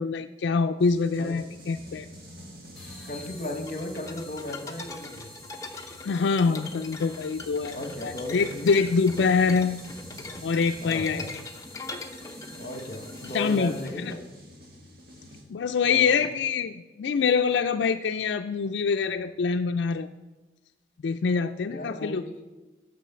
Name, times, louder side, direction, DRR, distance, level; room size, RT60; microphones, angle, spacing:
voice 1, 0.0-2.1 6.0-9.8 10.4-11.2 13.3-14.1 15.5-20.1 21.0-22.2, left 5 dB, 90° left, 7 dB, 0.4 m, -25 dB
sound 1, 0.8-15.4, equal, 55° right, 2.1 m, -47 dB
sound 2, 2.7-14.2, left 1 dB, ahead, 3.5 m, -50 dB
voice 2, 3.0-5.3 6.5-6.6 7.7-8.8 10.8-11.3 12.5-14.2 15.8-16.3 21.7-22.3, left 1 dB, 45° left, 7 dB, 1.1 m, -36 dB
sound 3, 3.7-14.1, left 3 dB, 20° left, 0.8 m, -42 dB
9.3 x 6.6 x 6.8 m, 1.2 s
head